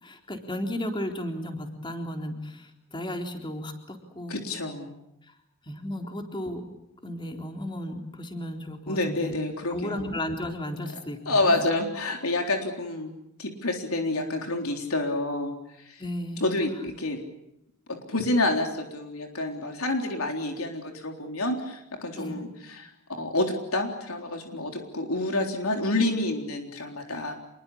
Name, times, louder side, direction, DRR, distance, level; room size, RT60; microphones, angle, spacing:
voice 1, 0.0-4.4 5.7-6.6 7.0-9.4 9.7-11.6 16.0-16.5 22.2-22.4, left 1 dB, 25° left, 3 dB, 3.8 m, -34 dB
voice 2, 4.3-5.0 8.9-10.0 11.3-13.1 13.4-16.0 16.4-17.2 17.9-27.3, left 2 dB, 85° left, 3 dB, 3.8 m, -28 dB
27.5 x 22.0 x 8.7 m, 0.83 s
head